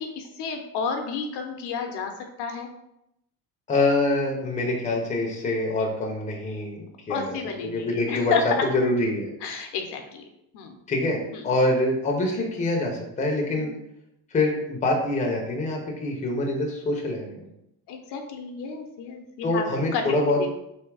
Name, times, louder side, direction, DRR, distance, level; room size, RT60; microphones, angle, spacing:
voice 1, 0.0-2.1 2.4-2.7 7.1-8.4 9.4-10.2 10.5-10.7 11.3-11.4 13.6-13.7 17.9-19.6 19.9-20.5, left 6 dB, 70° left, 4 dB, 0.8 m, -31 dB
voice 2, 3.7-7.4 7.6-9.3 10.9-13.7 14.3-17.4 19.4-20.5, left 2 dB, 15° left, 0 dB, 0.7 m, -25 dB
3.5 x 2.8 x 4.7 m, 0.81 s
cardioid pair, 145°, 42 cm